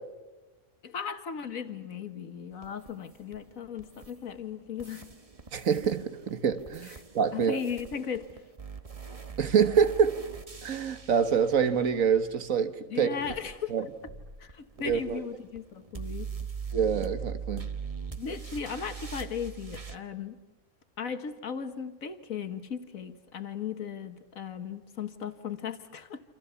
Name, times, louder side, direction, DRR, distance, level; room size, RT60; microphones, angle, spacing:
voice 1, 0.8-5.1 6.9-7.0 7.3-8.4 12.9-13.7 14.4-16.3 18.2-20.4 21.0-26.2, left 7 dB, 75° left, 1.8 m, -37 dB
sound 1, 2.6-4.5 4.8-12.5 13.2-20.0, right 6 dB, 25° right, 1.2 m, -42 dB
voice 2, 5.5-7.6 9.4-10.2 10.6-13.2 13.7-13.9 14.8-15.2 16.7-17.7, right 7 dB, 70° right, 1.8 m, -26 dB
28.5 x 27.0 x 7.1 m
omnidirectional pair, 1.5 m